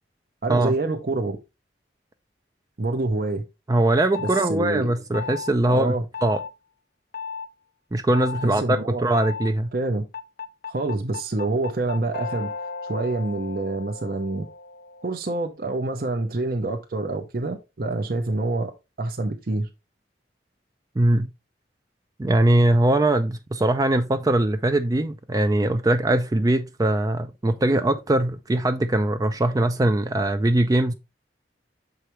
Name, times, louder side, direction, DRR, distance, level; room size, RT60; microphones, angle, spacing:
voice 1, 0.4-1.4 2.8-3.4 4.2-4.9 5.7-6.0 8.4-9.0 9.7-10.0 10.7-12.5 12.8-14.5 15.0-18.7 19.0-19.7, right 2 dB, 55° right, 0.8 m, -26 dB
voice 2, 3.7-5.9 6.2-6.4 7.9-9.7 21.0-21.3 22.2-30.9, right 1 dB, 20° right, 0.4 m, -21 dB
sound 1, 4.1-4.5 5.1-5.5 6.1-6.5 7.1-7.5 8.1-8.5 9.1-9.5 10.1-15.2, left 5 dB, 50° left, 0.4 m, -35 dB
6.8 x 4.9 x 3.1 m
head